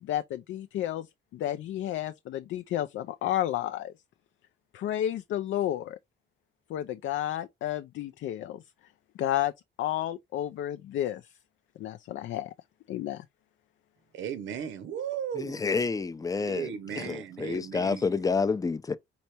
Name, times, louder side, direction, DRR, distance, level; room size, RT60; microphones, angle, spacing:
voice 1, 0.0-1.1 1.3-3.9 4.7-6.0 6.7-8.6 9.2-9.5 9.8-11.3 11.8-12.5 12.9-13.2, left 12 dB, 70° left, 0.4 m, -31 dB
voice 2, 14.1-15.6 16.4-18.1, right 8 dB, 75° right, 0.6 m, -36 dB
voice 3, 15.3-19.0, left 4 dB, 15° left, 0.5 m, -29 dB
5.4 x 3.3 x 2.8 m
cardioid pair, 90°, 20 cm